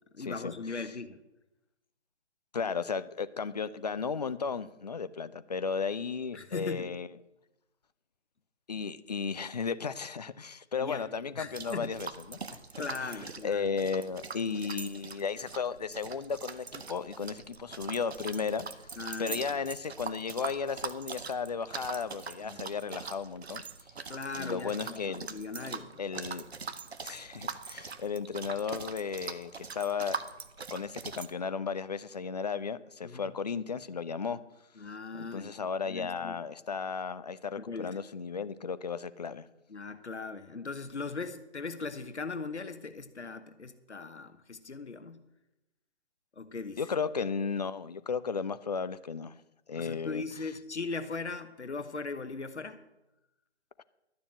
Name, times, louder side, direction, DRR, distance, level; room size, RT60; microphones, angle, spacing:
voice 1, 0.1-1.2 6.3-6.9 10.8-11.9 12.8-13.7 19.0-19.6 22.4-22.6 24.1-26.0 33.0-33.3 34.8-35.5 35.8-36.4 37.6-38.0 39.7-45.2 46.4-46.8 49.7-52.8, left 4 dB, 75° left, 11 dB, 1.1 m, -39 dB
voice 2, 2.5-7.1 8.7-12.6 13.1-13.2 13.4-18.7 19.2-23.6 24.4-25.3 26.0-26.5 27.0-30.2 30.7-34.4 35.1-39.5 46.8-49.3 49.7-50.2, left 5 dB, 35° left, 15 dB, 0.5 m, -34 dB
sound 1, 11.5-31.3, right 5 dB, 65° right, 1.1 m, -42 dB
12.5 x 6.9 x 7.7 m, 0.94 s
figure-of-eight pair, 140°, 35 cm